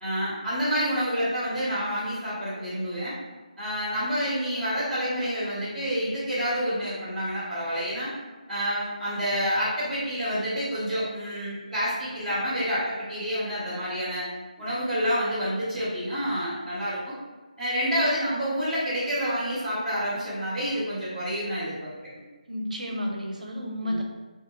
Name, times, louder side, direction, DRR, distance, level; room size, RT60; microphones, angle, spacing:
voice 1, 0.0-3.1 3.6-8.1 8.5-14.3 14.6-17.2 17.6-21.9 23.8-24.0, equal, 5° left, -18 dB, 1.1 m, -28 dB
voice 2, 22.5-24.0, equal, 70° right, 1 dB, 0.6 m, -31 dB
2.8 x 2.5 x 2.4 m, 1.2 s
figure-of-eight pair, 155°, 4 cm